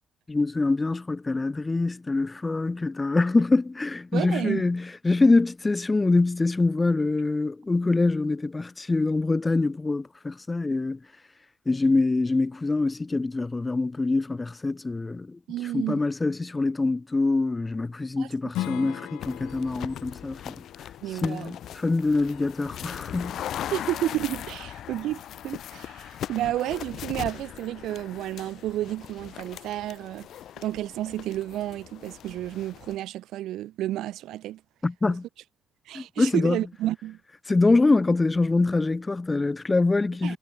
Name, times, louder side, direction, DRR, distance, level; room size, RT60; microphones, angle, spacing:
voice 1, 0.3-11.1 11.7-23.4 34.8-35.3 35.9-36.7 37.5-40.4, left 3 dB, 20° left, 0.3 m, -25 dB
voice 2, 4.1-4.6 15.5-16.0 18.2-18.3 18.8-18.9 21.0-21.5 23.7-30.3 30.6-34.6 35.9-37.2 40.2-40.4, right 14 dB, 85° right, 0.5 m, -31 dB
Strum, 18.5-23.7, left 15 dB, 90° left, 0.6 m, -40 dB
sound 1, 19.2-33.0, left 11 dB, 75° left, 1.8 m, -39 dB
cardioid pair, 90°, 0 cm